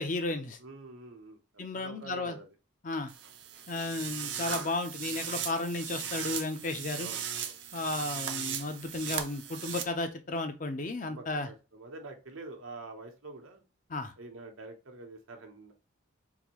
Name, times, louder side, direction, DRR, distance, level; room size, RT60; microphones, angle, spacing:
voice 1, 0.0-0.6 1.6-2.4 2.8-3.1 3.7-7.1 7.7-11.5 13.9-14.1, left 2 dB, 40° left, 7 dB, 0.5 m, -34 dB
voice 2, 0.6-2.5 3.8-4.3 7.0-7.8 11.0-13.6 14.2-15.7, right 3 dB, 85° right, 5 dB, 0.9 m, -47 dB
sound 1, 3.1-9.8, right 9 dB, 60° right, 0.5 m, -37 dB
3.8 x 2.6 x 3.0 m, 0.31 s
head